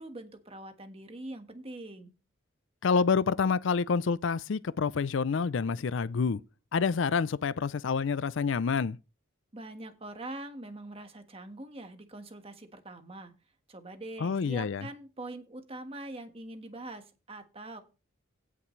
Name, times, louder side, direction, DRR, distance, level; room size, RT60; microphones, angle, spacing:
voice 1, 0.0-2.1 9.5-13.4 13.7-17.8, right 2 dB, 30° right, 1.4 m, -43 dB
voice 2, 2.8-6.4 6.7-9.0 14.2-14.8, left 5 dB, 65° left, 0.4 m, -28 dB
17.5 x 5.9 x 3.2 m
head